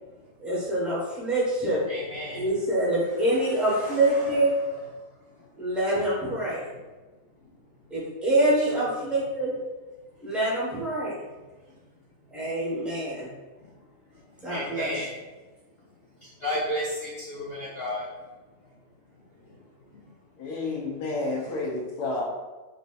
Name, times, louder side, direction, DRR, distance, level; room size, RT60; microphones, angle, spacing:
voice 1, 0.4-1.8 2.3-4.5 5.6-6.6 7.9-9.5 10.2-11.1 12.3-13.3 14.4-14.9, right 1 dB, ahead, -7 dB, 0.6 m, -25 dB
voice 2, 1.9-2.5 3.3-4.7 5.4-5.5 7.4-7.5 8.7-8.8 11.7-11.8 13.2-13.3 13.6-15.1 16.2-18.1 18.6-18.7 19.2-19.7 19.9-20.1 21.3-21.6, equal, 55° left, -8 dB, 0.7 m, -35 dB
voice 3, 20.4-22.2, left 2 dB, 70° left, -3 dB, 1.1 m, -30 dB
4.1 x 2.7 x 2.3 m, 1.2 s
omnidirectional pair, 1.8 m